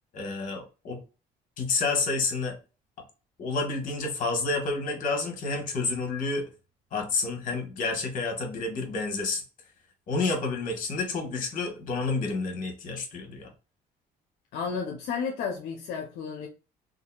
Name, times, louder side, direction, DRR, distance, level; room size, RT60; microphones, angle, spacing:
voice 1, 0.1-1.0 1.6-2.6 3.4-6.5 6.9-9.4 10.1-13.5, left 3 dB, 55° left, 1.1 m, -29 dB
voice 2, 14.5-16.5, left 6 dB, 80° left, 0.5 m, -32 dB
2.7 x 2.5 x 2.2 m
cardioid pair, 110°, 17 cm